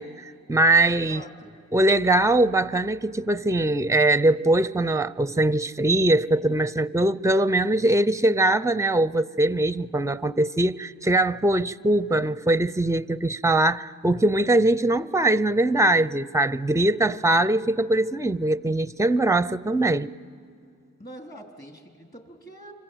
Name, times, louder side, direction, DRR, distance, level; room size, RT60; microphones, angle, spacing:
voice 1, 0.0-1.2 1.7-20.1, right 1 dB, 10° right, 0.6 m, -22 dB
voice 2, 0.9-1.6 21.0-22.7, right 1 dB, 30° left, 3.5 m, -44 dB
26.5 x 25.0 x 8.0 m
cardioid pair, 70°, 33 cm